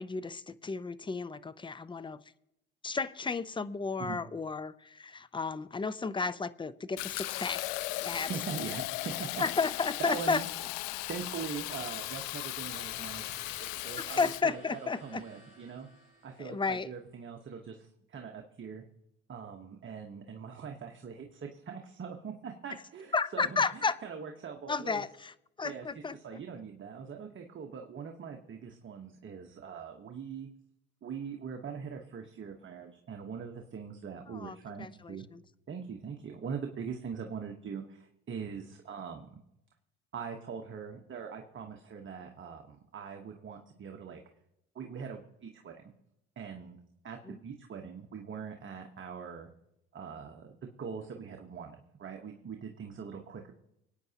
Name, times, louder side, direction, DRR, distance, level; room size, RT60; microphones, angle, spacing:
voice 1, 0.0-2.2 2.8-7.6 8.0-8.3 9.4-10.4 14.1-15.2 16.4-16.9 23.1-24.0 24.7-25.3 25.6-26.1 34.3-35.4 47.3-47.4, left 4 dB, 15° left, 16 dB, 0.5 m, -33 dB
Fill (with liquid), 7.0-14.4, left 18 dB, 85° left, 0.5 m, -37 dB
voice 2, 8.2-9.4 10.0-10.5 11.1-15.9 16.2-18.8 19.3-25.0 25.6-30.5 31.0-35.2 35.7-39.4 40.1-44.2 44.7-45.9 46.4-46.8 47.0-49.5 49.9-50.5 50.8-53.5, right 6 dB, 40° right, 3 dB, 1.3 m, -42 dB
sound 1, 12.7-16.9, left 2 dB, 40° left, 5.6 m, -53 dB
25.0 x 9.2 x 2.9 m, 0.83 s
supercardioid pair, 75°, 30 cm